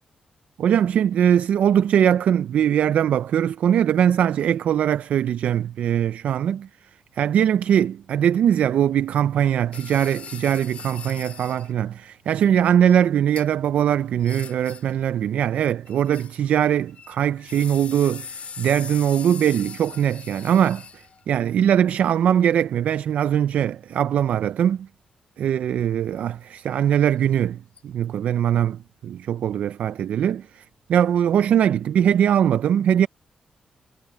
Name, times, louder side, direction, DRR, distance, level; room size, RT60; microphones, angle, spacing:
voice 1, 0.6-6.7 7.2-20.8 21.3-24.9 25.4-30.6 30.9-33.1, right 9 dB, 85° right, 0.4 m, -21 dB
sound 1, 9.7-11.7 13.4-13.5 14.2-15.0 15.9-16.6 16.9-21.2 27.3-27.4 27.8-27.9, left 6 dB, 60° left, 4.1 m, -40 dB
cardioid pair, 90°, 2 cm